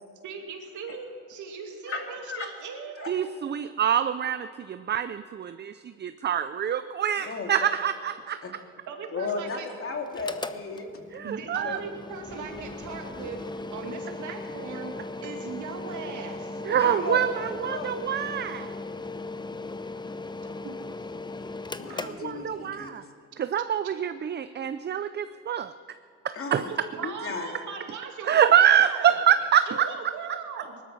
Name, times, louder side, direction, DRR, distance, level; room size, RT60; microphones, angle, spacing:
voice 1, 0.2-3.1 8.9-9.7 11.2-13.5 13.7-16.6 20.5-20.8 26.7-29.2 29.7-30.8, right 5 dB, 75° right, 2.4 m, -39 dB
voice 2, 1.9-2.5 3.0-3.1 7.2-7.7 8.4-8.5 9.1-10.9 11.6-11.8 16.8-17.3 17.6-18.0 21.8-23.0 26.3-26.7 27.0-27.5, left 4 dB, 45° left, 2.4 m, -34 dB
voice 3, 3.1-8.4 11.1-11.8 16.6-18.7 21.9-23.0 23.4-25.7 26.2-26.7 28.2-29.9, right 9 dB, 35° right, 0.5 m, -25 dB
Mechanical fan, 10.1-22.9, left 2 dB, 15° left, 0.7 m, -38 dB
19.0 x 12.5 x 6.0 m
cardioid pair, 90°, 30 cm